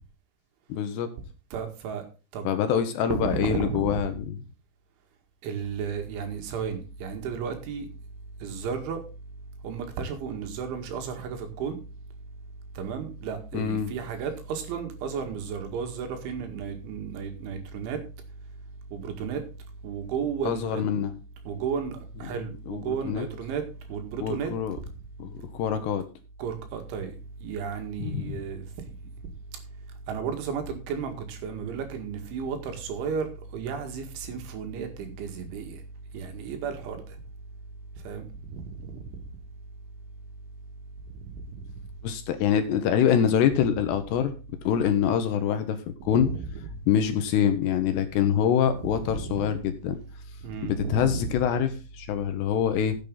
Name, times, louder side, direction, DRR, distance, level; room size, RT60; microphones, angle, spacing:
voice 1, 0.7-1.1 2.4-4.4 13.5-13.9 20.5-21.1 22.3-23.3 24.2-24.8 25.2-26.0 28.0-28.4 42.0-44.3 44.6-45.8 46.0-46.3 46.9-50.0 50.6-53.0, left 8 dB, 75° left, 2.8 m, -25 dB
voice 2, 1.5-2.1 2.3-2.8 3.1-4.0 5.4-7.9 8.4-9.0 9.6-11.8 12.8-18.0 18.9-19.4 19.8-20.8 21.5-23.6 23.9-24.5 26.4-27.1 27.4-28.7 30.1-35.8 36.1-37.0 38.0-39.0 41.6-41.7 46.1-46.4 48.7-49.5 50.4-51.3, right 6 dB, 75° right, 4.4 m, -33 dB
14.5 x 8.4 x 3.9 m
omnidirectional pair, 5.5 m